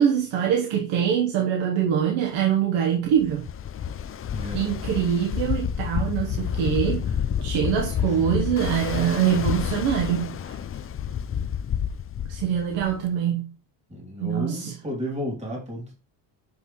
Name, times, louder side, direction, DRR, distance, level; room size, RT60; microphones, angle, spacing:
voice 1, 0.0-3.5 4.5-7.1 7.4-10.6 12.3-13.4 14.2-14.7, right 9 dB, 75° right, 1.4 m, -24 dB
Ocean, 3.2-13.1, left 8 dB, 30° left, 0.5 m, -29 dB
voice 2, 13.9-15.9, equal, 15° right, 3.0 m, -32 dB
7.7 x 5.3 x 3.2 m
cardioid pair, 100°, 47 cm